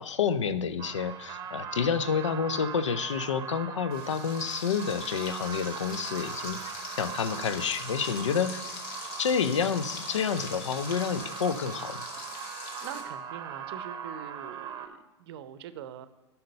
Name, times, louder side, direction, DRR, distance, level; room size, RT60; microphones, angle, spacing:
voice 1, 0.0-6.6 7.0-8.6 9.2-12.0, left 6 dB, 80° left, 13 dB, 0.5 m, -29 dB
sound 1, 0.8-14.9, right 8 dB, 25° right, 0.9 m, -40 dB
Frying (food), 3.9-13.0, left 3 dB, 55° left, 1.5 m, -42 dB
sound 2, 6.8-12.2, left 2 dB, 25° left, 3.1 m, -57 dB
voice 2, 12.8-16.1, right 9 dB, 55° right, 13 dB, 0.6 m, -43 dB
7.6 x 5.7 x 5.4 m, 1.0 s
hypercardioid pair, 100°, 15 cm